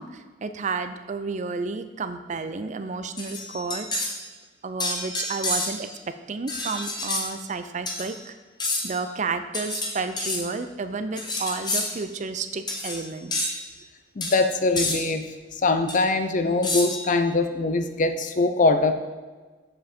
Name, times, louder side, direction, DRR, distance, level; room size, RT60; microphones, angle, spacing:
voice 1, 0.0-3.9 4.6-5.9 6.3-8.3 8.8-13.5, right 4 dB, 40° right, 10 dB, 0.5 m, -31 dB
sound 1, 3.2-4.2 4.8-5.9 6.5-7.3 7.9-8.1 8.6-9.0 9.5-10.4 11.2-11.9 12.7-13.0 13.3-13.6 14.2-14.4 14.8-15.0 15.9-16.0 16.6-17.1, left 2 dB, 25° left, 1.2 m, -29 dB
voice 2, 14.2-15.2 15.6-18.9, left 3 dB, 45° left, 8 dB, 0.6 m, -22 dB
7.5 x 7.2 x 4.3 m, 1.4 s
head